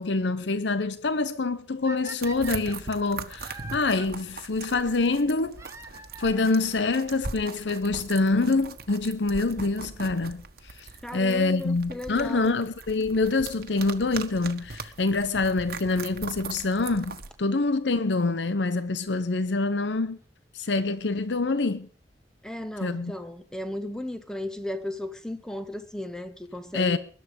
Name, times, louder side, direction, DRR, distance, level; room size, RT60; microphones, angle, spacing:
voice 1, 0.0-5.6 6.2-20.2 20.5-21.9 22.8-23.1 26.7-27.0, left 3 dB, 80° left, 0.8 m, -26 dB
sound 1, 1.8-4.1 5.5-6.6 7.5-7.6 8.3-8.4 8.6-8.7 10.6-10.8 13.7-13.8 14.8-14.9 16.3-16.4 16.7-16.8 17.1-17.2 17.3-17.4 17.6-17.7 17.9-18.0 18.2-18.3, right 4 dB, 15° right, 1.0 m, -44 dB
sound 2, 2.2-17.3, right 4 dB, 60° right, 1.4 m, -40 dB
voice 2, 11.0-12.6 22.4-27.0, left 1 dB, 5° left, 1.2 m, -35 dB
21.0 x 11.5 x 5.2 m
head